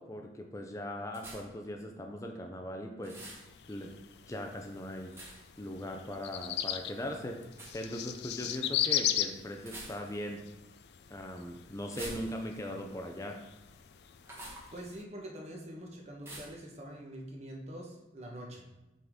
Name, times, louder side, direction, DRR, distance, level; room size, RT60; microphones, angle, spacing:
voice 1, 0.0-3.2 3.7-3.9 4.3-5.1 5.6-10.4 11.1-13.4, equal, 20° left, 2 dB, 0.6 m, -40 dB
sound 1, 1.1-1.7 3.0-3.5 5.1-5.6 7.5-7.8 9.6-10.3 11.8-12.7 14.2-14.7 16.2-16.6, right 1 dB, 15° right, 1.2 m, -46 dB
sound 2, 3.2-15.0, left 11 dB, 65° left, 0.4 m, -38 dB
voice 2, 14.7-18.6, right 1 dB, 35° right, -1 dB, 1.2 m, -45 dB
7.7 x 3.9 x 3.7 m, 0.96 s
head